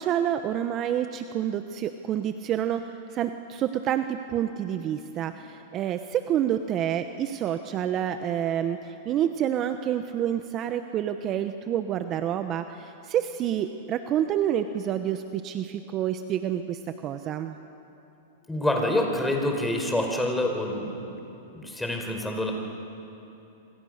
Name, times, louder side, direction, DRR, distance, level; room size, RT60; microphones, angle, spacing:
voice 1, 0.0-17.6, right 10 dB, 35° right, 9 dB, 1.0 m, -28 dB
voice 2, 18.5-21.1 21.5-22.5, left 1 dB, 5° left, 2 dB, 4.6 m, -27 dB
27.0 x 26.0 x 6.6 m, 2.9 s
hypercardioid pair, 125°, 0 cm